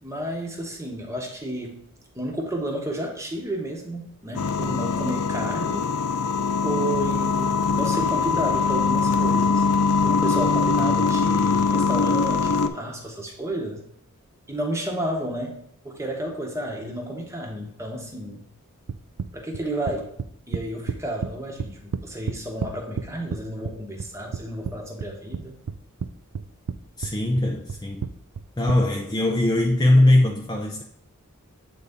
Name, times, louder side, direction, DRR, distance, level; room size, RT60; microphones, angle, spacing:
voice 1, 0.0-1.8 2.1-5.8 6.6-9.6 10.0-13.8 14.5-15.6 15.8-18.4 19.3-20.1 20.5-25.6, right 1 dB, 15° right, 1 dB, 1.0 m, -31 dB
sound 1, 4.3-12.7, left 4 dB, 90° left, 0.5 m, -22 dB
sound 2, 18.9-21.3 21.6-23.4 23.6-24.7 25.0-26.1 26.3-26.8 27.0-28.8, right 6 dB, 90° right, 0.4 m, -30 dB
voice 2, 27.0-28.1 28.6-30.8, left 1 dB, 20° left, 1 dB, 0.5 m, -20 dB
8.0 x 4.0 x 3.6 m, 0.74 s
head